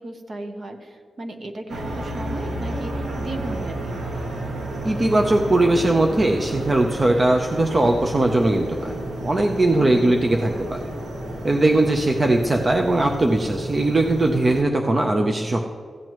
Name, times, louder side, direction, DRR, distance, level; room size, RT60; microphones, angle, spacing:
voice 1, 0.0-4.0 9.7-10.2, right 2 dB, 45° right, 5 dB, 0.9 m, -36 dB
sound 1, 1.7-14.6, right 1 dB, 65° right, 1.4 m, -31 dB
voice 2, 4.8-9.0 9.2-10.8 11.4-15.7, right 2 dB, 30° right, 3 dB, 0.5 m, -20 dB
14.5 x 9.1 x 3.1 m, 2.2 s
wide cardioid pair, 145°, 0 cm